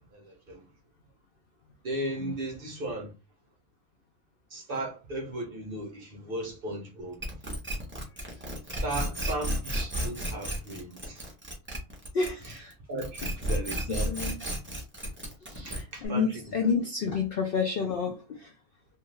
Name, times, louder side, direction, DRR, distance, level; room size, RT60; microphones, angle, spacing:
voice 1, 0.1-0.6 1.8-3.1 4.5-7.2 8.8-11.3 12.4-12.6 12.9-14.2 15.7-16.9, right 1 dB, 55° right, 0.6 m, -36 dB
sound 1, 7.2-12.7 13.0-16.1, equal, 15° right, 0.5 m, -33 dB
voice 2, 12.1-12.7 14.1-14.4 15.5-18.5, left 5 dB, 75° left, 0.5 m, -29 dB
2.6 x 2.4 x 3.1 m
omnidirectional pair, 1.5 m